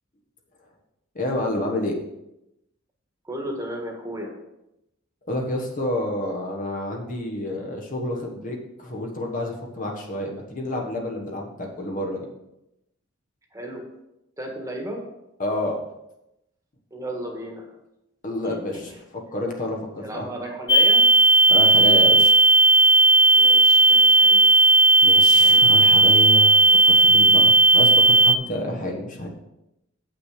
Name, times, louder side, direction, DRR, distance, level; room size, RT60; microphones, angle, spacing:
voice 1, 1.1-1.9 5.3-12.3 15.4-15.8 18.2-18.9 19.3-20.2 21.5-22.3 25.0-29.3, left 1 dB, 40° left, 1 dB, 1.3 m, -29 dB
voice 2, 3.2-4.3 13.5-13.8 14.4-15.0 16.9-17.7 18.4-19.0 20.0-21.1 23.3-24.7 26.0-26.9, right 1 dB, 15° right, 0 dB, 1.6 m, -35 dB
sound 1, 20.7-28.3, right 2 dB, 25° left, 0.3 m, -15 dB
8.1 x 6.0 x 5.0 m, 0.88 s
head